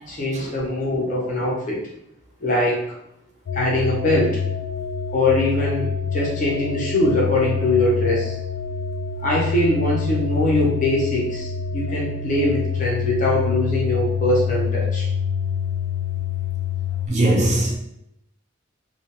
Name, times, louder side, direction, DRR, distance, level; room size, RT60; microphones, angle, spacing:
voice 1, 0.1-1.8 2.4-2.8 3.5-4.4 5.1-8.4 9.2-15.1, left 1 dB, 40° left, 0.7 m, -22 dB
sound 1, 3.5-17.1, left 6 dB, 80° left, 0.3 m, -26 dB
voice 2, 17.1-17.8, right 1 dB, 35° right, 0.4 m, -19 dB
2.4 x 2.2 x 2.8 m
head